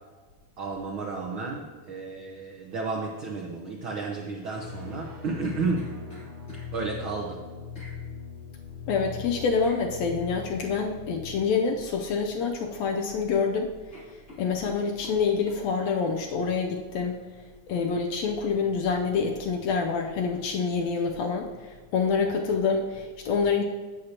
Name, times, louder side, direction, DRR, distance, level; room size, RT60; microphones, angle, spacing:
voice 1, 0.6-5.9 6.7-7.4, right 4 dB, 75° right, -1 dB, 1.1 m, -32 dB
sound 1, 4.5-11.3, left 7 dB, 20° right, 1.8 m, -40 dB
sound 2, 4.9-6.7 7.7-8.0 9.6-9.8 11.8-12.1 12.5-13.1 13.4-13.6 13.9-15.6 16.1-16.2, equal, 25° left, 3.1 m, -49 dB
voice 2, 8.9-13.7 14.1-17.2 17.7-23.6, left 5 dB, 75° left, 3 dB, 1.6 m, -27 dB
16.0 x 6.4 x 2.9 m, 1.4 s
omnidirectional pair, 3.5 m